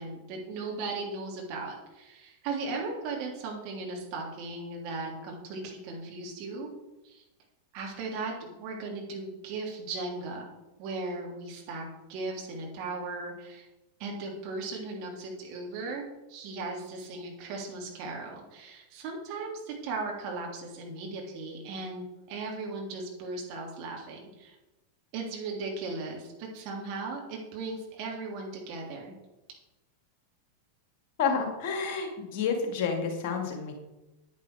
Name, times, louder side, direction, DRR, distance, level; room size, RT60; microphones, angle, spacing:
voice 1, 0.0-6.7 7.0-7.2 7.7-10.5 10.8-13.7 14.0-16.0 16.3-24.5 25.1-29.1, right 3 dB, 45° right, 0 dB, 3.4 m, -37 dB
voice 2, 31.2-33.7, left 5 dB, 45° left, 4 dB, 2.3 m, -29 dB
9.9 x 9.6 x 4.9 m, 1.0 s
figure-of-eight pair, 90°, 0 cm